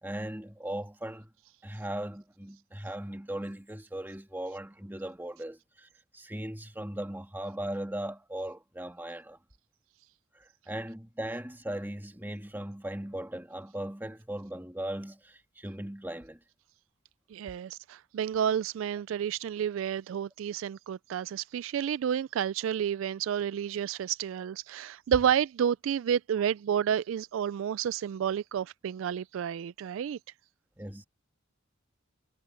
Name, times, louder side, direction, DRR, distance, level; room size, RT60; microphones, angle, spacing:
voice 1, 0.0-1.3 1.6-9.4 10.3-16.4 30.8-31.1, right 1 dB, 10° right, 1.9 m, -38 dB
voice 2, 17.3-30.2, right 8 dB, 70° right, 0.3 m, -30 dB
head